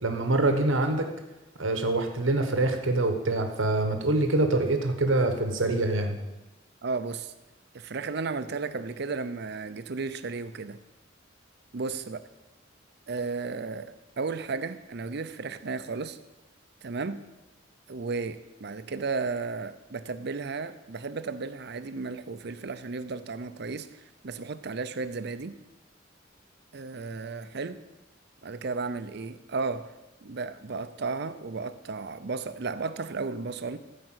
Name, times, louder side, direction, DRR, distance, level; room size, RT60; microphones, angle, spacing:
voice 1, 0.0-1.1 1.6-6.2, right 2 dB, 85° right, 5 dB, 1.3 m, -25 dB
voice 2, 6.8-7.3 7.7-10.8 11.7-12.2 13.1-16.2 16.8-17.2 17.9-25.5 26.7-27.8 28.4-29.9 30.2-33.8, right 4 dB, 55° right, 12 dB, 0.6 m, -34 dB
14.0 x 5.1 x 7.9 m, 1.0 s
head